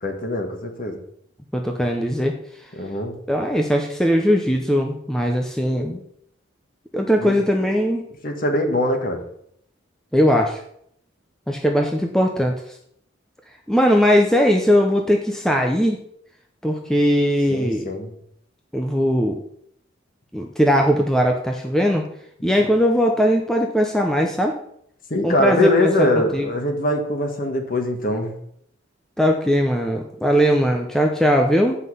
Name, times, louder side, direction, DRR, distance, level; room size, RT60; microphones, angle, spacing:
voice 1, 0.0-1.0 2.7-3.2 7.2-7.4 8.2-9.2 17.5-18.1 25.1-28.3, left 1 dB, 45° left, 4 dB, 1.3 m, -22 dB
voice 2, 1.5-2.4 3.3-6.0 6.9-8.0 10.1-10.6 11.5-12.6 13.7-16.0 16.6-17.9 18.7-19.4 20.3-22.1 22.4-24.5 25.2-26.1 26.3-26.5 29.2-31.8, equal, 5° left, 2 dB, 0.6 m, -19 dB
8.2 x 5.6 x 5.4 m, 0.70 s
head